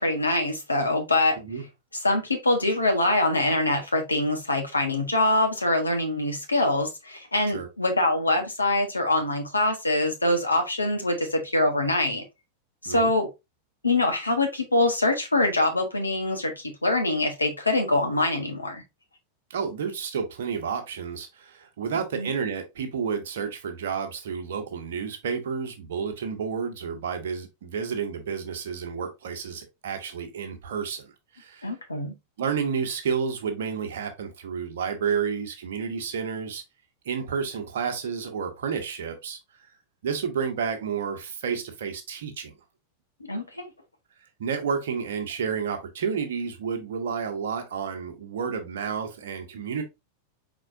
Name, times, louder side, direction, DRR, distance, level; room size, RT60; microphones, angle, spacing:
voice 1, 0.0-1.4 2.0-12.2 12.8-13.3 13.8-18.8 22.1-22.3 31.6-32.1 43.2-43.7, left 2 dB, 80° left, 1.2 m, -24 dB
voice 2, 19.5-31.7 32.4-36.6 37.0-39.4 40.0-42.6 44.4-49.8, right 6 dB, 60° right, 1.1 m, -30 dB
4.6 x 4.2 x 2.6 m
figure-of-eight pair, 90°, 0 cm